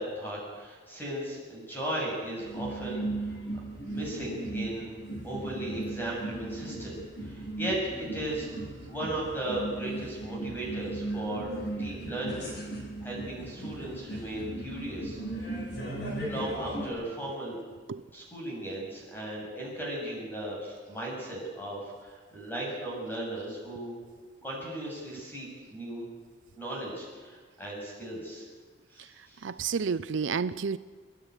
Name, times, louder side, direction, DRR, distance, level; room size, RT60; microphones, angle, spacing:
voice 1, 0.0-3.3 3.9-8.5 8.9-12.5 13.0-15.2 16.2-17.6 18.1-23.9 24.4-26.1 26.6-28.5 28.9-29.8, right 1 dB, 10° left, -3 dB, 7.7 m, -36 dB
sound 1, 2.4-16.9, right 2 dB, 60° left, 6.7 m, -37 dB
voice 2, 29.4-30.8, right 5 dB, 70° right, 15 dB, 0.5 m, -30 dB
26.0 x 11.0 x 9.9 m, 1.5 s
head